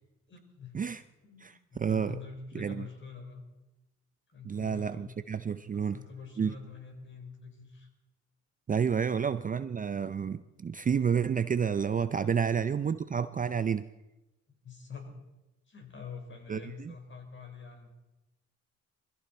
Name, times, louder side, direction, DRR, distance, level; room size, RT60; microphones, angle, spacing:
voice 1, 0.3-0.8 1.3-3.4 4.3-5.1 5.7-7.9 12.2-12.7 14.5-15.2 15.7-17.9, left 5 dB, 40° left, 4 dB, 4.2 m, -46 dB
voice 2, 1.4-2.2 2.5-2.9 4.4-6.0 6.4-6.6 8.7-13.9 16.5-16.9, right 7 dB, 30° right, 13 dB, 0.5 m, -30 dB
21.0 x 15.0 x 4.3 m, 1.0 s
cardioid pair, 90°, 30 cm